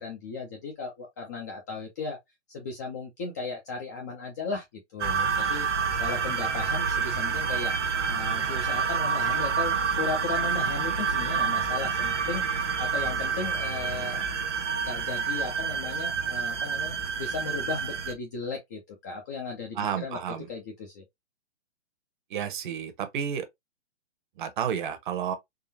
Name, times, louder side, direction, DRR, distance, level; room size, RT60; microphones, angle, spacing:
voice 1, 0.0-2.2 2.5-4.6 4.9-5.7 6.0-7.8 8.0-12.4 12.8-14.2 14.9-20.2 20.5-21.0, left 4 dB, 15° left, 0.4 m, -36 dB
sound 1, 5.0-18.1, right 6 dB, 90° right, 0.7 m, -28 dB
voice 2, 19.8-20.5 22.3-23.5 24.4-25.3, right 8 dB, 45° right, 0.9 m, -31 dB
3.7 x 2.4 x 2.7 m
hypercardioid pair, 135°, 35 cm